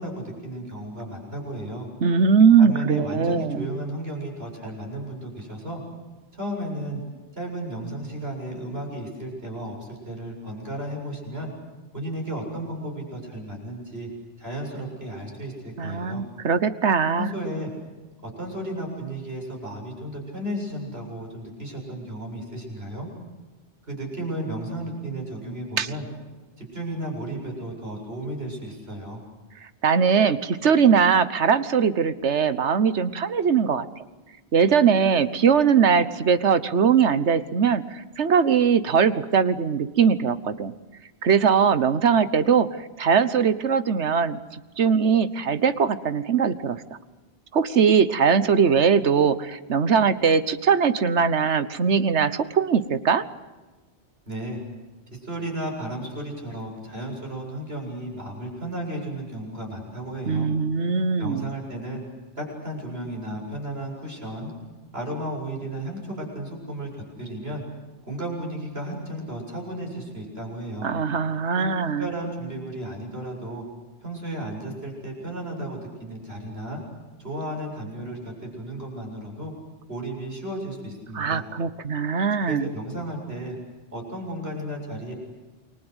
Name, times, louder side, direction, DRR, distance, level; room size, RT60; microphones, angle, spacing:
voice 1, 0.0-1.9 2.6-5.8 6.3-7.0 7.3-11.5 11.9-14.1 14.4-16.2 17.1-17.7 18.2-23.1 23.9-26.1 26.6-29.2 54.3-54.6 55.1-60.5 61.2-62.0 62.4-64.5 64.9-67.6 68.1-70.9 71.6-71.7 72.0-73.6 74.0-76.8 77.2-79.5 79.9-81.4 82.4-83.6 83.9-85.1, right 1 dB, 60° right, 1 dB, 7.8 m, -34 dB
voice 2, 2.0-3.7 15.8-17.3 25.8-25.9 29.8-33.9 34.5-40.7 41.2-44.4 44.8-46.8 47.5-53.2 60.3-61.4 70.8-72.1 81.1-82.7, right 6 dB, 80° right, 13 dB, 1.4 m, -21 dB
29.0 x 23.0 x 8.1 m, 1.2 s
omnidirectional pair, 1.2 m